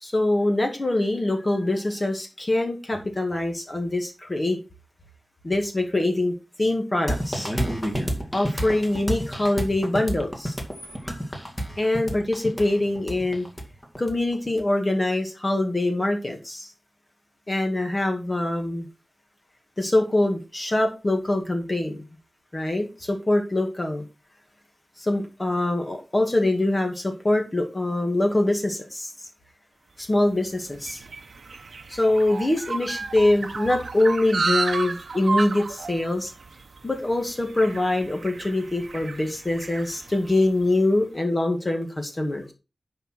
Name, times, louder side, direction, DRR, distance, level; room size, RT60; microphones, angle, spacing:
voice 1, 0.0-4.6 5.4-6.3 6.6-7.5 8.3-10.5 11.8-13.5 14.0-16.7 17.5-18.9 19.8-22.0 22.5-24.0 25.0-29.3 30.0-31.0 31.9-36.3 36.8-42.5, left 1 dB, 30° left, 4 dB, 2.1 m, -24 dB
sound 1, 7.1-14.6, equal, 10° left, 2.2 m, -30 dB
sound 2, 30.1-40.7, right 4 dB, 65° right, 0.9 m, -32 dB
10.0 x 4.8 x 5.9 m, 0.30 s
wide cardioid pair, 105°, 0 cm